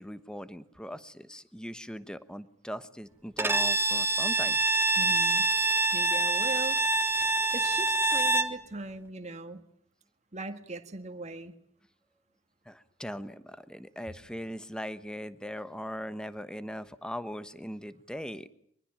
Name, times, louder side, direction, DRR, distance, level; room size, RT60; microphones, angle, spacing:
voice 1, 0.0-4.6 12.7-18.5, equal, 5° left, 13 dB, 1.1 m, -40 dB
Bowed string instrument, 3.4-8.6, right 2 dB, 10° right, 1.3 m, -26 dB
voice 2, 5.0-5.5 5.9-9.6 10.3-11.6, right 2 dB, 35° right, 7 dB, 1.7 m, -40 dB
24.0 x 22.5 x 8.9 m, 0.64 s
head